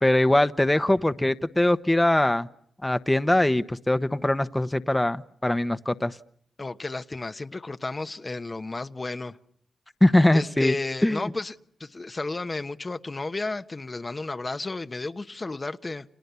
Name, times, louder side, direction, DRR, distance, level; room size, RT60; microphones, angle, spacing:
voice 1, 0.0-2.5 2.8-6.2 10.0-10.7 11.0-11.2, left 1 dB, 15° left, 1.2 m, -22 dB
voice 2, 6.6-9.4 10.3-16.0, left 3 dB, 40° left, 1.1 m, -33 dB
30.0 x 27.5 x 7.0 m
supercardioid pair, 45°, 0 cm